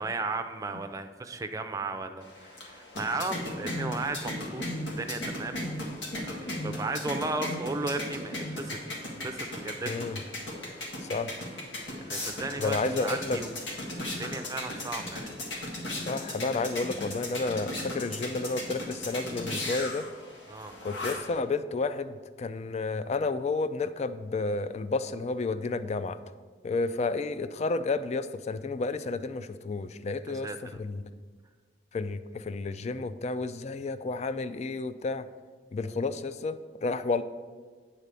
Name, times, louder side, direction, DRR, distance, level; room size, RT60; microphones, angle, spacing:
voice 1, 0.0-4.7 5.0-5.7 6.1-8.8 9.2-10.2 11.9-13.5 14.2-15.3 20.5-20.7 30.3-30.8, right 3 dB, 20° right, 6 dB, 0.5 m, -35 dB
sound 1, 2.2-21.4, left 1 dB, 85° left, 1.7 m, -37 dB
voice 2, 9.9-10.2 11.1-11.3 12.6-13.4 16.1-20.1 20.8-26.2 26.6-30.5 30.8-31.1 31.9-35.3 35.7-37.2, left 3 dB, 35° left, 12 dB, 0.3 m, -31 dB
8.7 x 4.0 x 6.8 m, 1.5 s
head